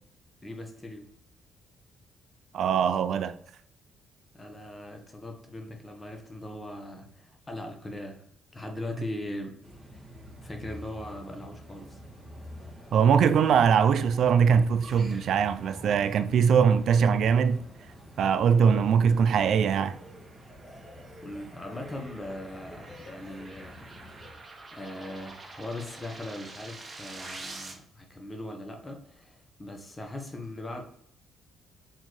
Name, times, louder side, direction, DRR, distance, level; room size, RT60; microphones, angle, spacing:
voice 1, 0.4-1.1 4.3-8.3 8.5-9.5 9.9-10.1 10.4-12.0 21.2-24.4 24.7-30.8, left 1 dB, 20° left, 1.0 m, -40 dB
voice 2, 2.5-3.4 12.9-17.6 18.2-20.0, right 7 dB, 70° right, 0.3 m, -22 dB
sound 1, 9.6-24.3, equal, 15° right, 1.9 m, -47 dB
sound 2, 19.1-27.7, right 3 dB, 30° right, 0.9 m, -47 dB
4.5 x 3.8 x 3.1 m
cardioid pair, 90°, 0 cm